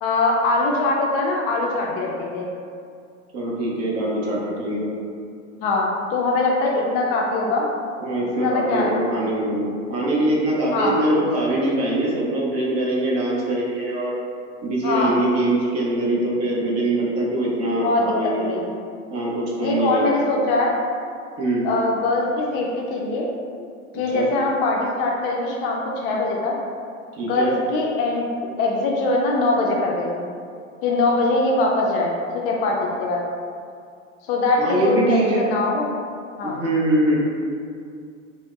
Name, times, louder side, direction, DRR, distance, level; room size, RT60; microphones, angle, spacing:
voice 1, 0.0-2.4 5.6-7.7 8.3-8.9 9.2-9.3 10.7-11.0 14.8-15.2 17.8-18.1 18.4-18.7 19.6-20.8 21.6-23.3 23.9-26.6 27.3-28.3 28.6-30.3 30.8-33.2 34.2-35.9 36.4-36.5, left 2 dB, 45° left, -1 dB, 0.5 m, -22 dB
voice 2, 3.3-4.9 8.0-14.1 14.6-18.5 19.1-20.1 21.4-21.7 24.1-24.3 27.1-27.5 34.6-35.5 36.4-37.2, right 1 dB, 40° right, -4 dB, 0.8 m, -23 dB
3.6 x 2.0 x 2.3 m, 2.3 s
hypercardioid pair, 90°, 39 cm